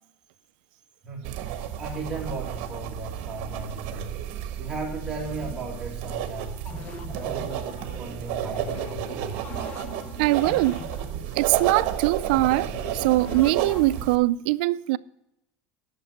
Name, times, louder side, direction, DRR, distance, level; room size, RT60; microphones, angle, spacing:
voice 1, 1.0-4.1 4.6-6.6 7.1-9.6, right 2 dB, 15° right, 2.1 m, -36 dB
sound 1, 1.2-14.2, right 10 dB, 50° right, 1.2 m, -32 dB
sound 2, 6.6-14.2, left 4 dB, 30° left, 0.9 m, -42 dB
voice 2, 10.2-10.8 11.3-15.0, right 18 dB, 70° right, 0.4 m, -22 dB
11.0 x 6.7 x 6.4 m
cardioid pair, 170°, 5 cm